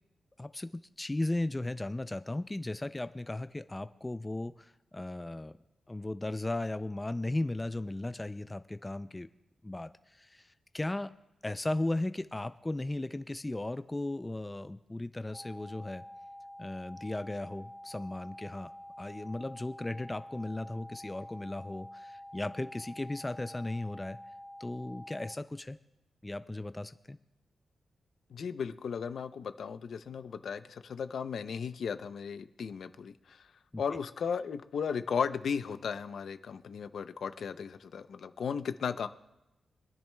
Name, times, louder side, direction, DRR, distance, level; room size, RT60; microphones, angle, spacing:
voice 1, 0.4-0.7 1.0-5.5 5.9-9.3 9.6-11.1 11.4-16.0 16.6-18.7 19.0-24.2 24.6-25.8 26.2-27.2 33.7-33.8, left 2 dB, 15° left, 11 dB, 0.3 m, -36 dB
sound 1, 15.3-25.3, left 1 dB, 35° right, 1.6 m, -48 dB
voice 2, 28.3-33.4 33.8-39.1, left 6 dB, 70° left, 11 dB, 0.5 m, -35 dB
25.0 x 10.5 x 2.3 m, 0.94 s
wide cardioid pair, 105°, 0 cm